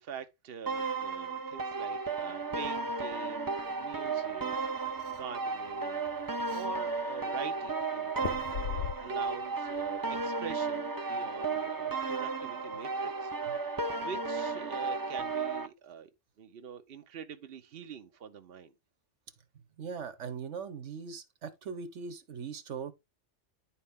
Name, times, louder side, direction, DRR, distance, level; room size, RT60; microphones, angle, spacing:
voice 1, 0.0-13.3 13.6-16.1 16.4-18.7, right 7 dB, 55° right, 1.0 m, -45 dB
sound 1, 0.7-15.7, right 4 dB, 25° right, 0.6 m, -34 dB
sound 2, 4.3-5.2 5.7-5.8 6.0-6.7 8.2-9.4 9.8-10.2, left 11 dB, 80° left, 0.9 m, -38 dB
voice 2, 19.8-22.9, right 6 dB, 75° right, 1.4 m, -40 dB
10.5 x 4.3 x 3.6 m
omnidirectional pair, 1.2 m